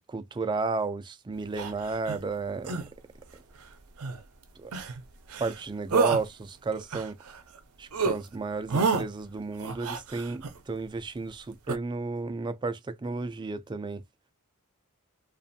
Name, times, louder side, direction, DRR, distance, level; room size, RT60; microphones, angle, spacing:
voice 1, 0.0-2.8 4.6-4.7 5.4-7.2 7.8-14.0, right 3 dB, 20° right, 0.3 m, -33 dB
sound 1, 1.6-2.2 2.6-2.9 4.0-4.2 4.7-5.0 5.3-5.6 5.9-6.2 6.7-7.6 7.9-8.2 8.7-9.0 9.6-10.6 11.7-11.8, right 4 dB, 75° right, 0.6 m, -29 dB
2.6 x 2.4 x 2.5 m
head